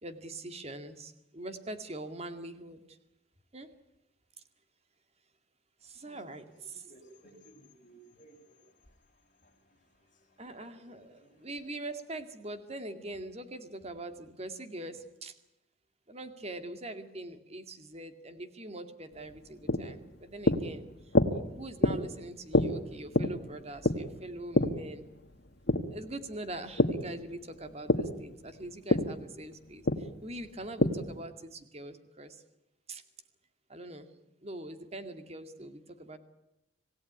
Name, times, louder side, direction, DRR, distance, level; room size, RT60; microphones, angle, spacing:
voice 1, 0.0-3.0 3.5-3.7 5.8-6.9 7.2-7.4 10.4-15.4 16.1-25.1 25.9-32.4 32.9-33.0 33.7-34.1 34.4-36.2, right 1 dB, 30° right, 8 dB, 2.3 m, -43 dB
voice 2, 6.9-10.4 10.7-10.8 11.2-11.5, right 1 dB, 40° left, 1 dB, 7.0 m, -59 dB
sound 1, 19.1-27.0 27.4-31.2, left 1 dB, 55° left, 2.1 m, -29 dB
27.0 x 17.5 x 9.5 m, 0.92 s
head